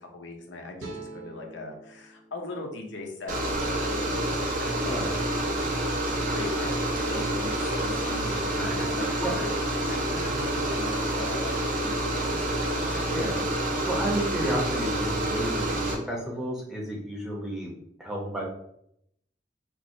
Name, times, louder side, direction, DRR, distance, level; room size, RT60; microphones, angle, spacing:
voice 1, 0.0-5.0 6.2-8.2 8.6-9.5 9.8-11.6 11.8-13.2, left 2 dB, 75° left, 1 dB, 0.6 m, -39 dB
sound 1, 0.8-4.0, right 2 dB, 80° right, 0.7 m, -46 dB
sound 2, 3.3-15.9, right 1 dB, 45° right, 0.6 m, -28 dB
voice 2, 8.0-9.3 13.1-17.7 18.0-18.4, equal, 5° right, -3 dB, 0.7 m, -32 dB
4.4 x 2.1 x 2.6 m, 0.73 s
head